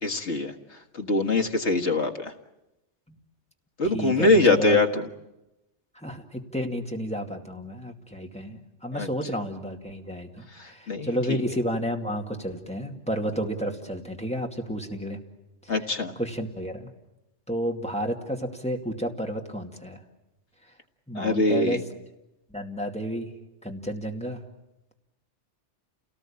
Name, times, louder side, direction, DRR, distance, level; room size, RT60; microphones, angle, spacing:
voice 1, 0.0-0.5 0.9-2.3 3.8-5.1 8.9-9.1 10.6-11.4 15.7-16.1 21.2-21.8, left 2 dB, 75° left, 5 dB, 2.0 m, -23 dB
voice 2, 3.8-4.8 6.0-15.2 15.6-15.7 16.2-16.9 17.5-20.0 21.1-21.8 22.5-23.3 23.6-24.4, equal, 5° left, 2 dB, 2.3 m, -31 dB
29.5 x 18.5 x 8.7 m, 0.95 s
omnidirectional pair, 1.2 m